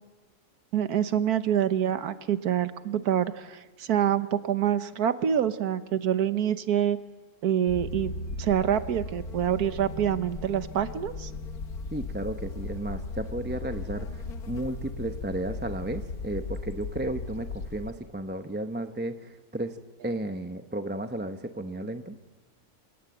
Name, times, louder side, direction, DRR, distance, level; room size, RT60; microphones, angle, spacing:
voice 1, 0.7-7.0 7.4-8.1 8.4-11.3, right 9 dB, 85° right, 12 dB, 1.5 m, -26 dB
sound 1, 7.7-17.9, left 3 dB, 75° left, 1.8 m, -37 dB
voice 2, 11.9-22.2, right 1 dB, 10° right, 7 dB, 0.7 m, -34 dB
28.0 x 18.0 x 8.0 m, 1.2 s
omnidirectional pair, 1.6 m